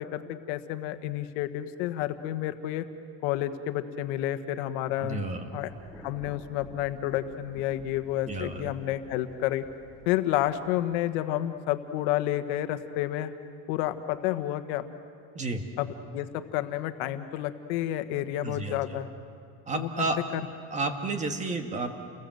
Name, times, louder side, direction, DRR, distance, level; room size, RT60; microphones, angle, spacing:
voice 1, 0.0-2.9 3.2-5.2 5.5-5.7 6.0-9.6 10.0-13.3 13.7-14.8 15.8-19.1 19.7-19.9 20.3-20.4, left 13 dB, 80° left, 9 dB, 1.5 m, -30 dB
voice 2, 5.0-5.5 8.3-8.7 15.4-15.6 18.4-19.0 19.7-20.2 20.7-21.9, right 3 dB, 20° right, 6 dB, 1.9 m, -31 dB
Thunder, 5.7-11.0, equal, ahead, 2.4 m, -51 dB
30.0 x 21.5 x 8.0 m, 2.4 s
cardioid pair, 155°, 33 cm